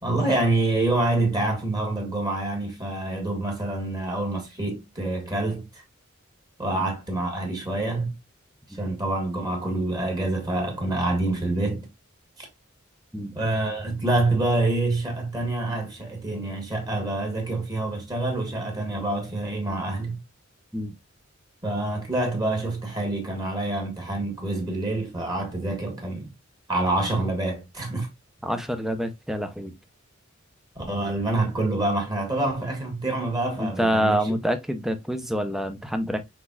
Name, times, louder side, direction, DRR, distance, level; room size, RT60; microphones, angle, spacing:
voice 1, 0.0-5.8 6.6-8.1 8.7-11.9 12.4-12.5 13.3-20.2 21.6-26.3 26.7-28.1 30.7-34.2, right 2 dB, 20° right, 1.5 m, -26 dB
voice 2, 28.4-29.7 33.6-36.2, equal, ahead, 0.6 m, -27 dB
6.0 x 3.5 x 2.3 m
head